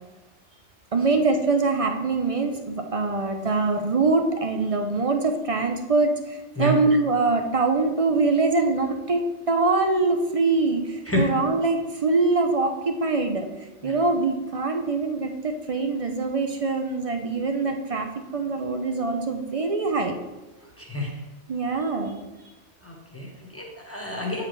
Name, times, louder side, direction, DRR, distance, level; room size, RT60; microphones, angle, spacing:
voice 1, 0.9-13.5 13.8-20.2 21.5-22.2, right 3 dB, 45° right, 5 dB, 0.4 m, -24 dB
voice 2, 20.8-21.2 22.8-24.5, equal, 10° left, -1 dB, 1.2 m, -29 dB
8.5 x 4.9 x 3.2 m, 1.1 s
omnidirectional pair, 1.2 m